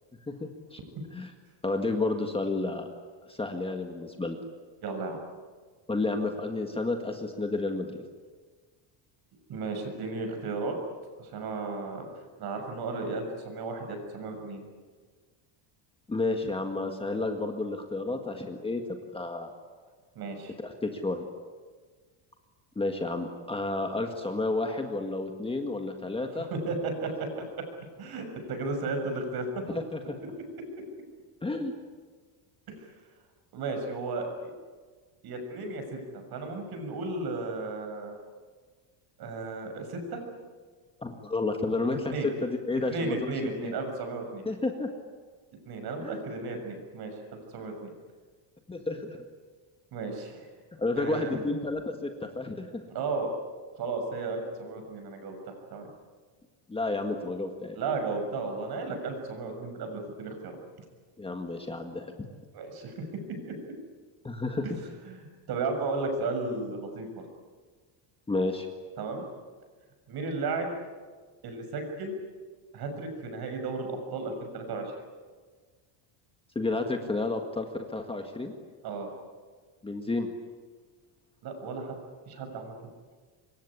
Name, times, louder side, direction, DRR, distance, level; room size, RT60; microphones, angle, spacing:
voice 1, 0.3-0.8 1.1-1.3 1.6-2.9 3.3-4.4 5.9-8.0 16.1-19.5 20.6-21.2 22.8-26.5 29.7-30.0 31.4-31.7 41.0-43.3 43.6-43.7 44.5-44.9 46.0-46.2 48.7-49.2 50.8-52.8 56.7-57.8 61.2-62.3 64.2-64.6 68.3-68.7 76.6-78.5 79.8-80.3, left 3 dB, 10° left, 4 dB, 1.8 m, -31 dB
voice 2, 4.8-5.2 9.5-10.8 11.2-12.1 12.4-14.6 20.1-20.5 26.5-27.5 28.0-29.6 33.5-34.5 35.2-38.2 39.2-40.2 42.1-42.3 42.9-44.4 45.6-47.1 47.5-47.9 49.9-50.5 50.9-51.5 52.9-53.3 53.8-55.9 57.7-60.6 62.5-63.1 63.5-63.6 65.0-67.1 69.0-69.2 70.1-70.7 71.4-72.1 72.7-74.9 78.8-79.1 81.4-82.0 82.3-82.7, right 3 dB, 45° right, 5 dB, 6.7 m, -34 dB
26.0 x 23.0 x 9.9 m, 1.5 s
cardioid pair, 155°, 50 cm